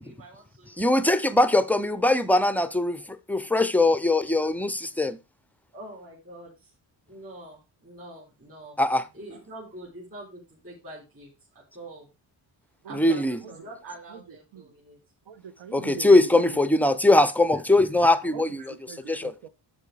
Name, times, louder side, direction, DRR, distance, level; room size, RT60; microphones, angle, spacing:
voice 1, 0.0-0.8 4.4-4.5 5.7-6.7 7.1-8.8 9.1-12.1 12.8-13.2 13.5-15.0 18.6-18.7, right 1 dB, 30° right, 4.1 m, -45 dB
voice 2, 0.8-3.0 3.3-5.2 8.8-9.0 12.9-13.4 15.7-18.7 19.1-19.3, left 2 dB, 5° left, 0.4 m, -21 dB
voice 3, 12.8-13.2 13.4-13.5 14.1-14.2 14.5-14.7 15.3-16.6 18.3-18.4 18.7-19.5, right 7 dB, 80° right, 1.2 m, -41 dB
12.0 x 4.7 x 4.8 m
wide cardioid pair, 175°, 46 cm